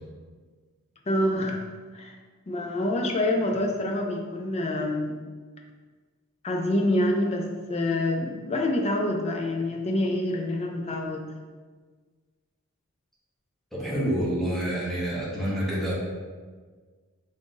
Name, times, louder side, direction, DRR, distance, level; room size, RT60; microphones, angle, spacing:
voice 1, 1.1-1.6 1.9-2.2 2.5-5.1 6.4-11.2, left 1 dB, 30° left, 2 dB, 0.4 m, -26 dB
voice 2, 13.7-15.9, equal, ahead, -7 dB, 0.7 m, -27 dB
3.5 x 2.6 x 3.7 m, 1.5 s
head